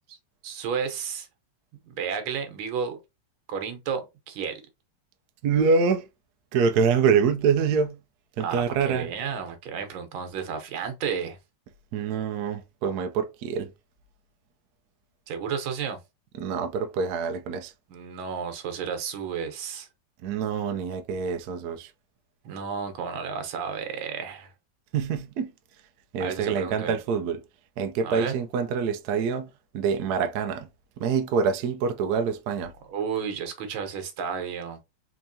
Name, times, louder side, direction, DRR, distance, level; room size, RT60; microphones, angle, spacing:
voice 1, 0.4-1.3 1.8-3.0 3.5-4.6 8.4-11.4 15.3-16.0 17.9-19.9 22.4-24.5 26.2-27.0 28.0-28.3 32.9-34.8, right 6 dB, 90° right, 1.7 m, -32 dB
voice 2, 5.4-6.0 6.5-8.0 8.4-9.1 11.9-13.7 16.4-17.7 20.2-21.9 24.9-25.5 26.1-27.4 27.8-30.7 31.0-32.7, right 6 dB, 70° right, 1.0 m, -25 dB
4.4 x 2.9 x 2.6 m
omnidirectional pair, 2.2 m